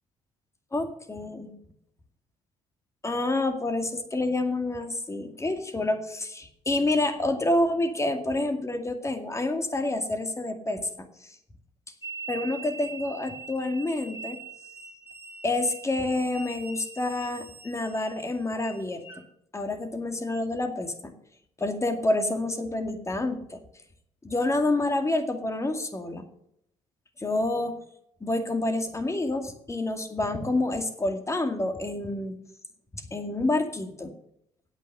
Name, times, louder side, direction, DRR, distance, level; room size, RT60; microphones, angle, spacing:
voice 1, 0.7-1.5 3.0-10.8 11.2-11.4 12.3-14.4 15.4-19.0 19.5-21.1 21.6-23.6 24.2-26.3 27.2-27.8 28.2-32.4 32.9-34.1, left 2 dB, 20° left, 7 dB, 2.2 m, -28 dB
sound 1, 12.0-19.2, right 4 dB, 15° right, 2.3 m, -43 dB
9.1 x 8.2 x 6.6 m, 0.73 s
supercardioid pair, 70°, 13 cm